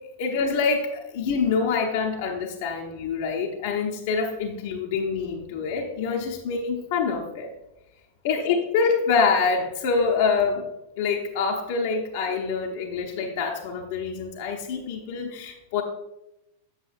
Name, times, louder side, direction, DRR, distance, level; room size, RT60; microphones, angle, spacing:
voice 1, 0.2-7.5 8.2-10.7 11.0-15.8, left 5 dB, 50° left, 1 dB, 0.7 m, -26 dB
8.0 x 6.3 x 2.5 m, 0.90 s
figure-of-eight pair, 90°, 0 cm